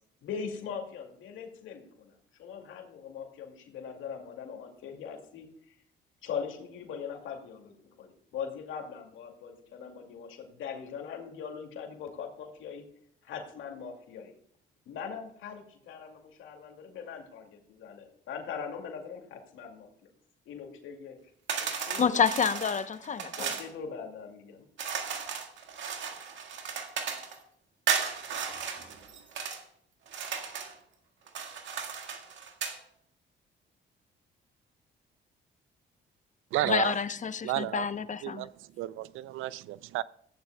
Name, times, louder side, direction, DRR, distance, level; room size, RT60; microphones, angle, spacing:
voice 1, 0.2-2.1 2.4-5.8 6.2-12.9 13.2-14.4 14.9-19.9 20.5-21.2 21.6-22.2 23.4-24.7, left 6 dB, 85° left, 2.3 m, -41 dB
sound 1, 21.5-23.7 24.8-27.4 27.9-29.6 30.1-30.8 31.3-32.8, right 7 dB, 70° right, 1.7 m, -35 dB
voice 2, 22.0-23.5 36.6-38.5, left 6 dB, 40° left, 0.8 m, -28 dB
voice 3, 36.5-37.0 37.4-37.9 38.2-40.0, right 15 dB, 85° right, 0.4 m, -32 dB
15.5 x 10.0 x 2.2 m
cardioid pair, 90°, 20 cm